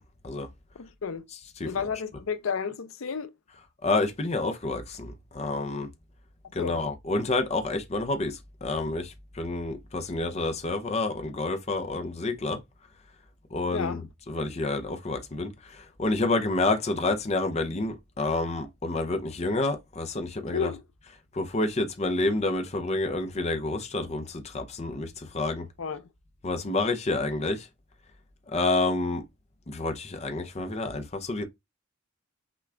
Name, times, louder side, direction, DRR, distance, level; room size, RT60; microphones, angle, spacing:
voice 1, 0.8-1.2 1.7-3.3 6.6-6.8 13.7-14.0 20.5-20.8 25.8-26.0, left 6 dB, 80° left, 0.6 m, -31 dB
voice 2, 3.8-5.9 6.5-12.6 13.5-14.0 14.3-15.5 16.0-20.7 21.4-25.6 26.4-27.6 28.5-29.2 29.7-31.4, left 2 dB, 30° left, 0.6 m, -29 dB
5.9 x 2.4 x 3.3 m
head